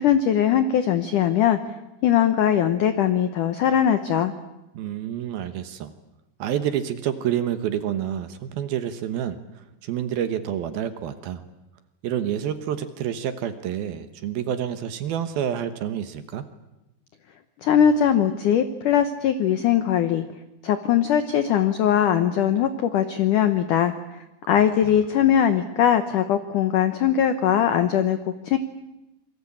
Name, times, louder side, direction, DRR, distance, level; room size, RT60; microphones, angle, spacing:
voice 1, 0.0-1.6 2.0-4.3 17.6-20.3 20.6-23.9 24.5-28.2 28.5-28.6, left 9 dB, 80° left, 10 dB, 1.8 m, -20 dB
voice 2, 4.7-5.9 6.4-11.4 12.0-16.5 24.8-25.0, right 10 dB, 70° right, 10 dB, 2.6 m, -28 dB
26.0 x 23.5 x 8.6 m, 0.95 s
omnidirectional pair, 5.2 m